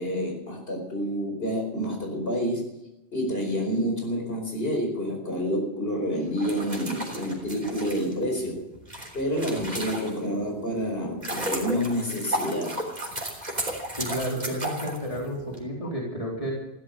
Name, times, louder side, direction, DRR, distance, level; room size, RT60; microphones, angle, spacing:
voice 1, 0.0-2.7 3.1-8.6 9.1-12.8, equal, 65° left, 2 dB, 4.8 m, -28 dB
sound 1, 6.3-10.4 10.9-15.6, right 1 dB, 40° right, 3.6 m, -34 dB
voice 2, 14.0-16.5, equal, 30° left, -2 dB, 3.9 m, -31 dB
15.5 x 13.0 x 6.8 m, 0.95 s
omnidirectional pair, 1.1 m